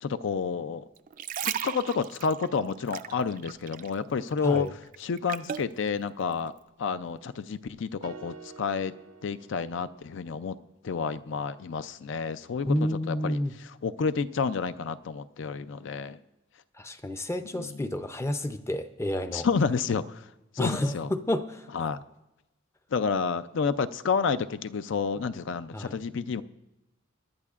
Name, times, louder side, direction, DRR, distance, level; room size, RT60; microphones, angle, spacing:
voice 1, 0.0-0.8 1.4-4.7 5.0-6.5 6.8-8.9 9.2-10.6 10.8-16.2 17.5-17.8 19.3-20.3 20.5-21.1 21.7-22.0 22.9-26.4, left 5 dB, 65° left, 14 dB, 0.4 m, -30 dB
sound 1, 1.0-4.0 4.3-5.7 6.3-6.5, right 9 dB, 45° right, 0.4 m, -36 dB
sound 2, 8.0-10.3, right 4 dB, 85° right, 0.9 m, -48 dB
voice 2, 12.7-13.5 16.8-19.5 20.6-21.7 25.7-26.0, left 1 dB, 15° left, 9 dB, 0.5 m, -30 dB
23.0 x 11.0 x 2.4 m, 0.99 s
head